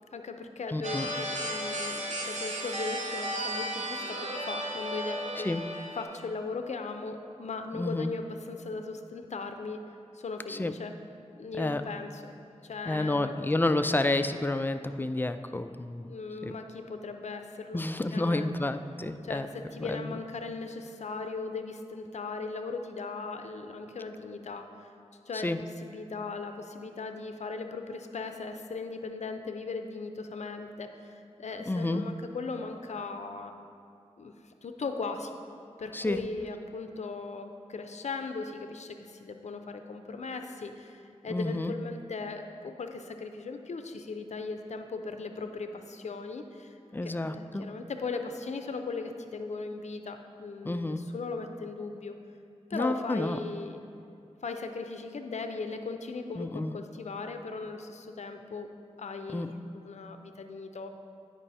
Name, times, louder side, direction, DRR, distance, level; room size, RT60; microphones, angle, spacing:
voice 1, 0.1-5.5 5.9-9.8 10.1-10.9 11.4-12.3 12.6-13.3 13.8-14.0 16.1-17.8 18.1-18.5 19.2-24.9 25.3-25.5 25.8-33.5 34.2-35.3 35.8-52.1 52.7-53.8 54.4-58.7 59.0-59.5 59.7-60.9, left 4 dB, 65° left, 6 dB, 0.6 m, -38 dB
voice 2, 0.7-1.1 5.4-5.6 7.7-8.1 10.5-10.7 11.6-11.8 12.9-16.1 16.4-16.5 17.7-19.5 19.8-20.1 25.3-25.6 31.7-32.1 35.9-36.2 41.3-41.7 46.9-47.6 50.6-51.0 52.7-53.4 56.4-56.7 59.3-59.5, left 2 dB, 15° left, 10 dB, 0.3 m, -30 dB
sound 1, 0.8-6.0, right 1 dB, 75° right, 1.0 m, -34 dB
8.9 x 5.4 x 4.2 m, 2.5 s
cardioid pair, 60°, 12 cm